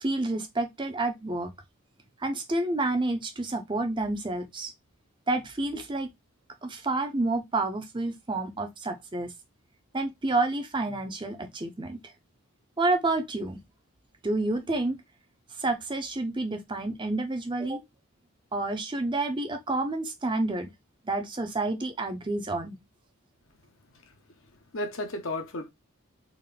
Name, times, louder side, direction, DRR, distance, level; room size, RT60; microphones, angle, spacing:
voice 1, 0.0-1.5 2.2-4.7 5.3-6.1 6.6-9.3 9.9-12.1 12.8-13.6 14.2-15.0 15.6-17.8 18.5-20.7 21.0-22.8, right 2 dB, 20° right, 0.5 m, -29 dB
voice 2, 23.9-25.7, left 1 dB, 60° left, 0.8 m, -35 dB
3.8 x 2.5 x 3.2 m
head